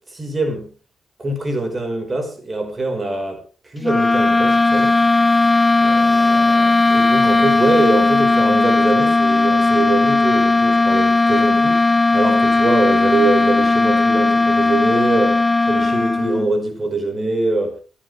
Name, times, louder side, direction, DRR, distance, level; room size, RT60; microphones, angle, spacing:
voice 1, 0.1-0.7 1.2-5.0 5.8-11.8 12.1-17.7, right 2 dB, 30° right, 5.2 m, -23 dB
sound 1, 3.8-16.5, left 3 dB, 15° left, 1.2 m, -16 dB
25.0 x 12.0 x 3.5 m
cardioid pair, 85°, 0 cm